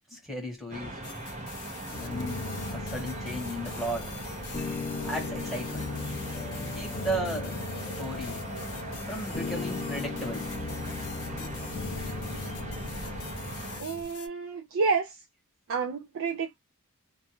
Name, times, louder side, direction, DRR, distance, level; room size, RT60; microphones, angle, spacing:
voice 1, 0.1-1.0 2.0-4.2 5.0-5.9 6.6-7.6 8.0-8.4 9.1-10.5, right 1 dB, ahead, 1.1 m, -35 dB
sound 1, 0.7-13.8, right 1 dB, 30° right, 0.8 m, -39 dB
sound 2, 1.0-14.3, left 8 dB, 80° left, 0.7 m, -46 dB
sound 3, 1.9-14.0, left 3 dB, 35° left, 0.5 m, -38 dB
voice 2, 13.8-15.2 15.7-16.6, right 5 dB, 60° right, 0.4 m, -29 dB
2.5 x 2.2 x 2.8 m
head